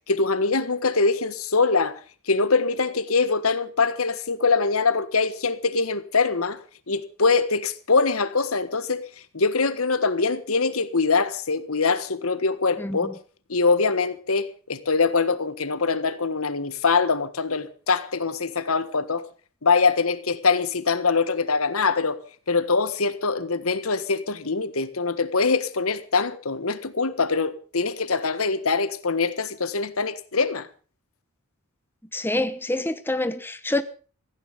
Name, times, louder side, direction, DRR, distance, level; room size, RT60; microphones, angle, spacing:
voice 1, 0.1-1.9 2.3-6.6 6.9-9.0 9.3-13.1 13.5-19.3 19.6-22.2 22.5-30.7, left 4 dB, 85° left, 1.5 m, -23 dB
voice 2, 12.8-13.1 32.1-33.8, left 1 dB, 10° left, 1.0 m, -26 dB
16.5 x 15.5 x 5.3 m
head